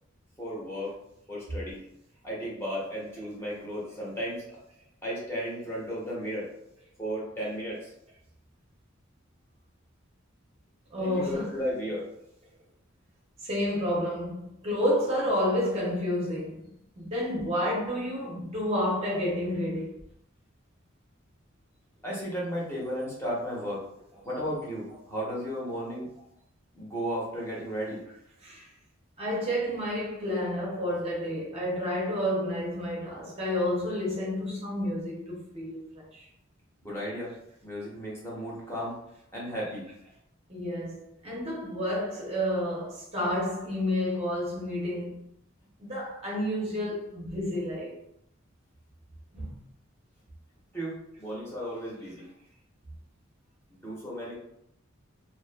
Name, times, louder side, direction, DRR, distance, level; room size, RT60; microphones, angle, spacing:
voice 1, 0.4-0.9 1.3-1.8 2.2-4.4 5.0-6.5 7.0-7.9 11.0-12.1 22.0-23.9 24.2-26.1 26.7-28.0 36.8-37.3 37.6-39.0 39.3-39.9 50.7-52.3 53.7-54.3, equal, 15° left, 0.7 m, -34 dB
voice 2, 10.9-11.5 13.4-16.7 17.0-19.9 28.4-28.7 29.2-36.3 40.5-45.3 45.8-48.0 49.3-49.6, left 1 dB, 30° right, 0.6 m, -30 dB
2.5 x 2.3 x 2.2 m
head